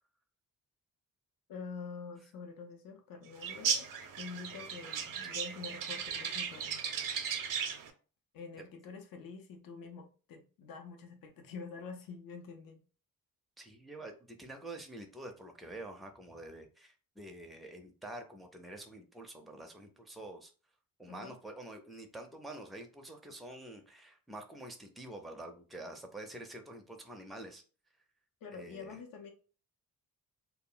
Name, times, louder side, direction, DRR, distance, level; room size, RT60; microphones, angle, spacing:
voice 1, 1.5-3.9 4.2-6.8 8.3-12.8 21.1-21.4 28.4-29.3, left 5 dB, 70° left, 0.6 m, -46 dB
sound 1, 3.4-7.9, right 7 dB, 65° right, 0.5 m, -36 dB
voice 2, 13.6-20.5 21.0-27.6 28.5-29.0, right 1 dB, ahead, 0.4 m, -47 dB
2.2 x 2.0 x 3.7 m
cardioid pair, 100°, 35 cm